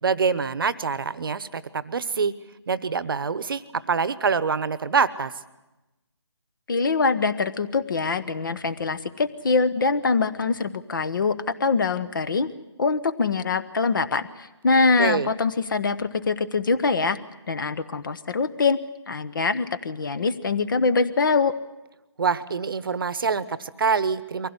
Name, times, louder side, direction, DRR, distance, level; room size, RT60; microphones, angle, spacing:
voice 1, 0.0-2.3 2.7-5.3 15.0-15.3 22.2-24.5, right 5 dB, 50° right, 16 dB, 1.0 m, -25 dB
voice 2, 6.7-11.3 11.6-12.5 12.8-17.2 17.5-18.8 19.1-21.5, left 4 dB, 45° left, 13 dB, 1.1 m, -23 dB
23.5 x 16.5 x 9.7 m, 1.0 s
figure-of-eight pair, 160°, 15 cm